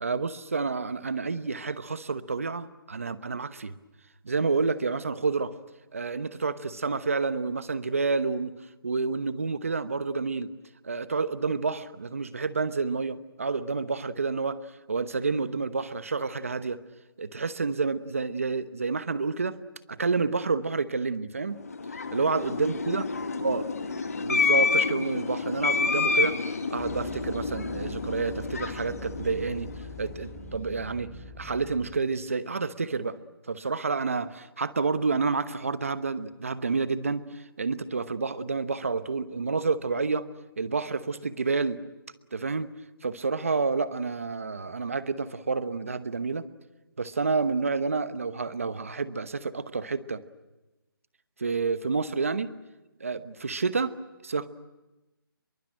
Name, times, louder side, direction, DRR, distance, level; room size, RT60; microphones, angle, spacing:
voice 1, 0.0-3.7 4.2-5.5 5.9-8.5 8.8-10.5 10.8-14.6 14.9-16.8 17.2-19.6 19.9-21.6 22.1-23.1 23.4-23.6 24.2-26.4 26.7-29.7 30.0-31.1 31.4-33.2 33.5-40.3 40.6-41.8 42.3-42.7 43.0-46.5 47.0-50.2 51.4-52.5 53.0-53.9 54.2-54.5, right 4 dB, 35° right, 14 dB, 1.0 m, -29 dB
sound 1, 21.6-30.1, left 4 dB, 40° left, 1.4 m, -29 dB
sound 2, 26.8-31.9, left 1 dB, 5° right, 2.7 m, -42 dB
23.5 x 23.0 x 8.9 m, 1.1 s
hypercardioid pair, 180°, 12 cm